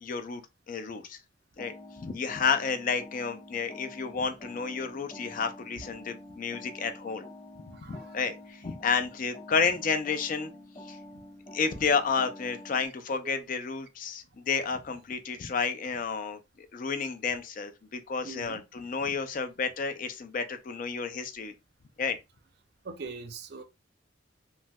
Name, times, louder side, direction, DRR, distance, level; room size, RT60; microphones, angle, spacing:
voice 1, 0.0-0.4 0.7-1.2 1.6-7.2 7.9-10.5 10.9-11.0 11.5-16.4 16.7-21.5 22.0-22.2, left 5 dB, 45° left, 0.4 m, -31 dB
sound 1, 1.6-12.9, left 1 dB, 30° left, 1.0 m, -48 dB
voice 2, 7.7-8.2 13.2-13.4 18.2-18.6 22.8-23.6, right 4 dB, 55° right, 0.5 m, -42 dB
3.1 x 2.7 x 2.2 m
head